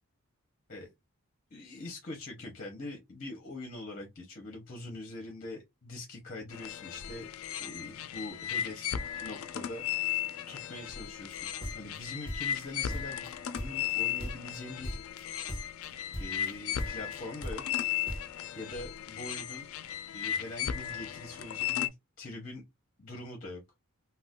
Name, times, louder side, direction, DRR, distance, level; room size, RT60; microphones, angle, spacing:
voice 1, 1.5-7.3 7.6-15.0 16.2-17.6 18.5-19.7 20.1-22.6 23.0-23.6, left 2 dB, 40° left, 0.7 m, -43 dB
sound 1, 6.5-21.9, left 10 dB, 70° left, 0.4 m, -36 dB
sound 2, 11.3-12.7 12.9-13.9 14.2-14.6 14.8-15.2 15.5-15.9 16.1-16.5 16.8-18.3, equal, 25° right, 0.8 m, -39 dB
2.4 x 2.3 x 3.5 m
head